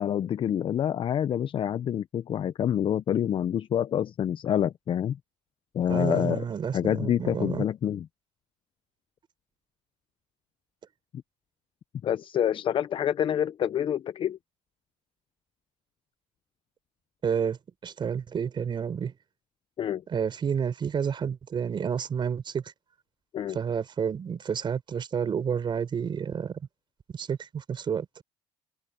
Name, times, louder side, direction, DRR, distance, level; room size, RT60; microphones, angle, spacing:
voice 1, 0.0-5.2 5.7-6.4 6.7-8.1 12.0-14.4 19.8-20.0 23.3-23.6, left 9 dB, 45° left, 0.7 m, -27 dB
voice 2, 5.9-7.6 17.2-17.6 17.8-19.1 20.1-22.7 23.5-26.6 27.1-28.2, right 7 dB, 40° right, 4.3 m, -30 dB
cardioid pair, 100°, 12 cm